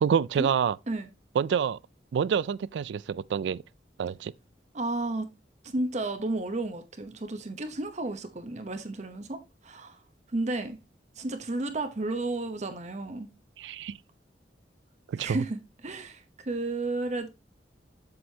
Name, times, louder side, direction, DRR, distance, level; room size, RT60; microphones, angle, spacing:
voice 1, 0.0-0.8 1.4-1.8 2.1-3.6 4.0-4.3 13.6-14.0 15.1-15.4, right 7 dB, 80° right, 0.3 m, -27 dB
voice 2, 4.7-5.3 5.6-10.0 10.3-10.8 11.2-13.3 15.2-17.3, right 2 dB, 40° right, 0.8 m, -32 dB
7.8 x 6.3 x 2.8 m
head